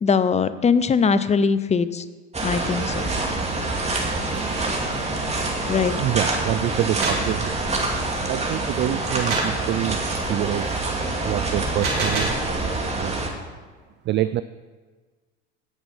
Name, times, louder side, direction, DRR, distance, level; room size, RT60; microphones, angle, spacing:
voice 1, 0.0-2.0 2.4-2.9 5.7-6.0, left 5 dB, 20° left, 14 dB, 0.7 m, -21 dB
sound 1, 2.3-13.3, right 2 dB, 20° right, 2.5 m, -26 dB
Tools, 4.3-5.0 5.3-5.4 5.9-6.8 7.0-7.1 7.7-8.3 8.7-9.7 10.2-11.1, right 3 dB, 70° right, 3.9 m, -42 dB
voice 2, 6.0-7.7 8.1-10.0 10.3-10.7 11.2-12.3 12.9-13.1 14.0-14.4, right 13 dB, 35° right, 14 dB, 0.4 m, -26 dB
sound 2, 6.8-7.3 9.3-9.6 11.6-12.4, right 3 dB, 90° right, 2.7 m, -27 dB
17.0 x 6.0 x 5.4 m, 1.4 s
hypercardioid pair, 85°, 36 cm